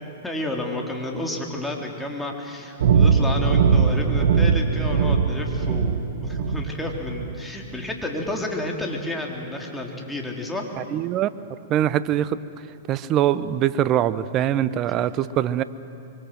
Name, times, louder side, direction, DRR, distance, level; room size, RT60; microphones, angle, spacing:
voice 1, 0.2-10.6, left 2 dB, 5° left, -1 dB, 3.9 m, -31 dB
sound 1, 2.8-7.4, right 5 dB, 70° right, 1.4 m, -20 dB
voice 2, 10.8-11.3 11.7-12.4 12.9-15.6, right 11 dB, 35° right, 16 dB, 0.9 m, -23 dB
25.5 x 24.0 x 7.8 m, 2.6 s
hypercardioid pair, 115°, 0 cm